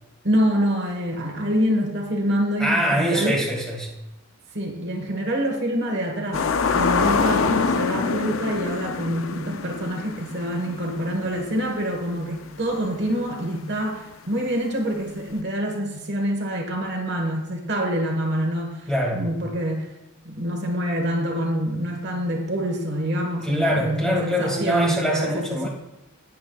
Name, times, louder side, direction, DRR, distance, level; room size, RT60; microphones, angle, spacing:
voice 1, 0.2-3.4 4.5-6.4 6.7-19.9 20.2-25.7, equal, 50° right, 2 dB, 1.4 m, -26 dB
voice 2, 2.6-3.9 18.9-19.3 23.4-25.7, equal, 5° left, -3 dB, 2.1 m, -23 dB
sound 1, 6.3-11.8 12.2-12.3 15.4-15.5, left 5 dB, 70° left, 0.5 m, -25 dB
18.5 x 7.5 x 2.3 m, 0.98 s
head